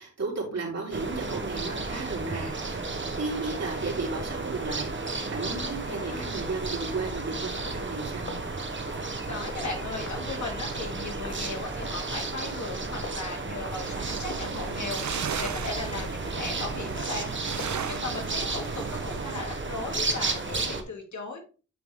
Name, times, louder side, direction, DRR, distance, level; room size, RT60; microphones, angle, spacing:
voice 1, 0.0-2.8 3.1-8.4, right 3 dB, 60° right, -2 dB, 3.5 m, -34 dB
sound 1, 0.9-20.8, right 3 dB, 40° right, 1.2 m, -33 dB
voice 2, 5.6-6.4 9.3-21.4, left 3 dB, 75° left, 2 dB, 2.4 m, -37 dB
sound 2, 7.6-18.3, left 3 dB, 50° left, 1.3 m, -48 dB
sound 3, 13.8-19.5, right 8 dB, 75° right, 0.6 m, -37 dB
9.3 x 3.9 x 3.6 m, 0.35 s
wide cardioid pair, 80°, 29 cm